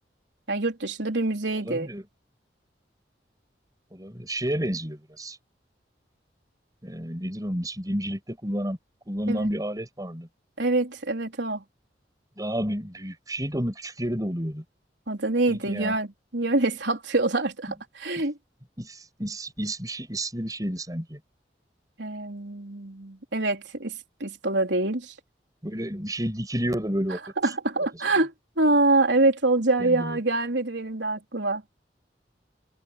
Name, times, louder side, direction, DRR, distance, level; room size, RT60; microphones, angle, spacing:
voice 1, 0.5-1.9 9.3-9.5 10.6-11.6 15.1-18.4 22.0-25.1 27.4-31.6, right 2 dB, 90° right, 3.8 m, -25 dB
voice 2, 1.6-2.0 3.9-5.4 6.8-8.8 9.1-10.3 12.4-14.6 15.5-16.0 18.8-21.2 25.6-27.2 29.8-30.2, equal, 20° right, 5.6 m, -30 dB
head